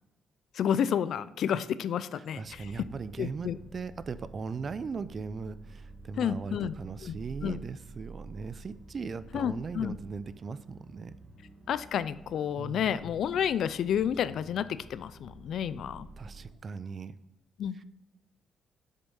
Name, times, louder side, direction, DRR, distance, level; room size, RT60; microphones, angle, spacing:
voice 1, 0.6-2.7 3.2-3.6 6.2-6.7 7.0-7.6 9.3-10.0 11.7-16.1 17.6-17.8, left 9 dB, 70° left, 16 dB, 0.4 m, -30 dB
voice 2, 2.2-11.1 12.6-13.0 16.2-17.2 17.7-17.8, right 5 dB, 45° right, 15 dB, 0.5 m, -39 dB
sound 1, 2.4-16.5, right 2 dB, 30° right, 1.3 m, -50 dB
7.9 x 7.3 x 5.5 m, 0.93 s
cardioid pair, 90°, 0 cm